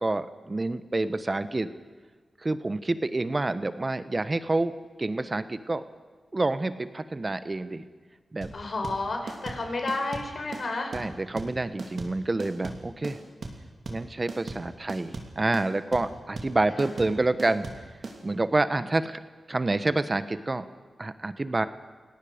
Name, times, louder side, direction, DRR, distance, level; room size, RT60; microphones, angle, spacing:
voice 1, 0.0-1.7 2.4-4.7 5.0-5.8 6.3-7.8 8.3-8.5 10.9-13.2 13.9-17.7 18.2-19.2 19.5-20.6 21.0-21.7, right 2 dB, 35° right, 12 dB, 1.2 m, -28 dB
sound 1, 8.4-18.2, right 3 dB, 70° right, 3.1 m, -38 dB
voice 2, 8.5-10.9 16.7-17.0, left 2 dB, 60° left, 3 dB, 4.8 m, -31 dB
29.5 x 17.5 x 5.2 m, 1.4 s
cardioid pair, 50°, 0 cm